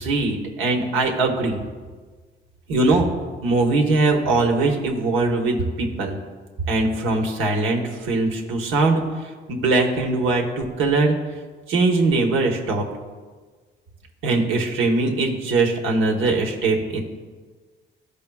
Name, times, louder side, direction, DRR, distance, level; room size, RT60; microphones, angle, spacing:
voice 1, 0.0-1.6 2.7-3.1 3.4-6.2 6.7-11.1 11.7-12.8 14.2-17.0, right 3 dB, 90° right, 1 dB, 1.1 m, -21 dB
13.0 x 5.1 x 2.3 m, 1.4 s
cardioid pair, 90°, 20 cm